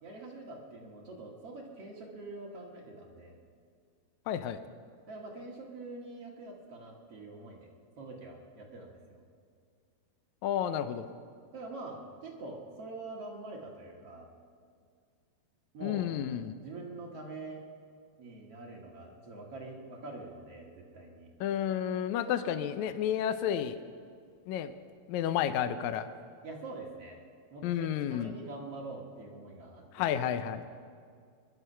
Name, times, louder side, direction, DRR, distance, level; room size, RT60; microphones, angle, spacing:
voice 1, 0.0-3.4 5.1-9.2 11.5-14.3 15.7-16.1 16.6-17.6 18.2-21.3 26.4-27.2 27.5-27.7 28.1-30.1, right 2 dB, 50° right, -2 dB, 2.4 m, -45 dB
voice 2, 4.3-4.6 10.4-11.1 15.8-16.5 21.4-23.8 24.5-24.7 25.1-26.1 27.6-28.3 29.9-30.6, left 10 dB, 90° left, 10 dB, 1.7 m, -31 dB
22.0 x 11.0 x 5.6 m, 2.2 s
omnidirectional pair, 4.1 m